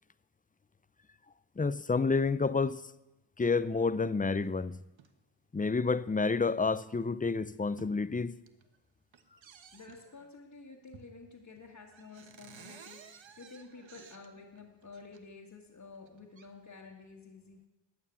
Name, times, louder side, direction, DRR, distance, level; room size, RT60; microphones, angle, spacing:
voice 1, 1.6-2.8 3.4-4.8 5.5-8.4, left 4 dB, 20° left, 0.5 m, -29 dB
sound 1, 4.9-5.1 6.0-6.2 6.8-6.9 7.3-8.0 8.3-8.8 9.1-10.3 10.9-11.3 11.6-11.7 11.9-15.2 15.9-16.5, right 7 dB, 80° right, 1.3 m, -55 dB
voice 2, 9.7-17.6, left 4 dB, 45° left, 1.8 m, -51 dB
14.5 x 9.6 x 8.5 m
wide cardioid pair, 140°, 45 cm